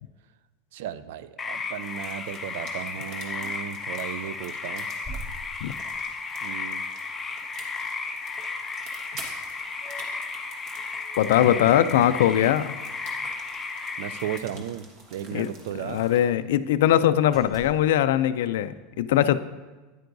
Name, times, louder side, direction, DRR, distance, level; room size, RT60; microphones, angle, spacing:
voice 1, 0.7-4.9 6.4-6.8 11.4-12.2 14.0-14.9 15.1-16.0, right 10 dB, 75° right, 15 dB, 0.4 m, -35 dB
sound 1, 1.4-14.4, left 4 dB, 15° left, 0.5 m, -34 dB
sound 2, 1.8-16.3, right 2 dB, 45° right, 1.4 m, -48 dB
sound 3, 3.0-3.8 4.3-4.5 5.0-6.2 8.8-8.9 9.2-10.3 10.7-12.5 12.8-12.9 13.3-13.5 14.6-14.7 14.9-15.0 15.4-16.3 16.7-16.9 17.3-17.9, right 1 dB, 20° right, 1.5 m, -45 dB
voice 2, 11.2-12.7 15.3-15.5 15.8-19.4, left 11 dB, 85° left, 13 dB, 0.3 m, -21 dB
9.5 x 9.2 x 2.6 m, 1.2 s
supercardioid pair, 150°, 0 cm